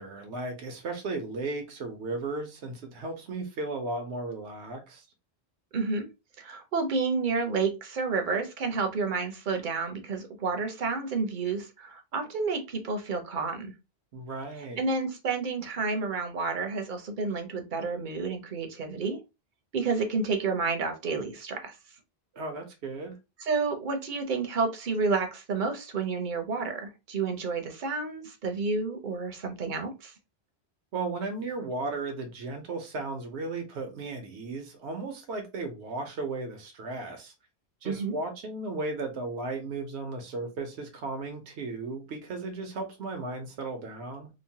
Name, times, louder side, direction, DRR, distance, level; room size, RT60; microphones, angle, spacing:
voice 1, 0.0-5.1 14.1-14.8 22.3-23.2 30.9-37.3 37.8-44.3, right 3 dB, 80° right, 0.9 m, -35 dB
voice 2, 5.7-6.1 6.4-13.7 14.8-19.2 19.7-21.8 23.4-30.1 37.8-38.1, right 4 dB, 55° right, 0.7 m, -30 dB
2.9 x 2.1 x 2.7 m
omnidirectional pair, 1.1 m